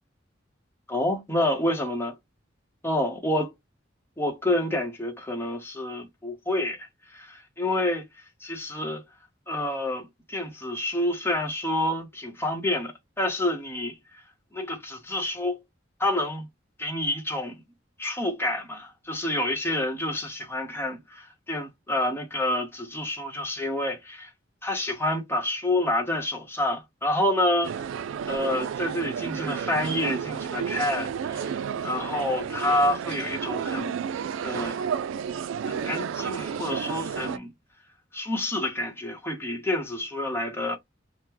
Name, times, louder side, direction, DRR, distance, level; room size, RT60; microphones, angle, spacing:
voice 1, 0.9-2.1 2.8-3.5 4.2-8.0 8.4-9.0 9.5-13.9 14.5-15.6 16.0-16.5 16.8-17.5 18.0-24.3 24.6-27.7 28.3-31.5 31.8-33.9 34.4-34.8 35.7-37.5 38.1-40.8, left 1 dB, 15° left, 0.9 m, -28 dB
sound 1, 27.6-37.4, right 7 dB, 85° right, 0.3 m, -31 dB
3.0 x 2.1 x 3.7 m
head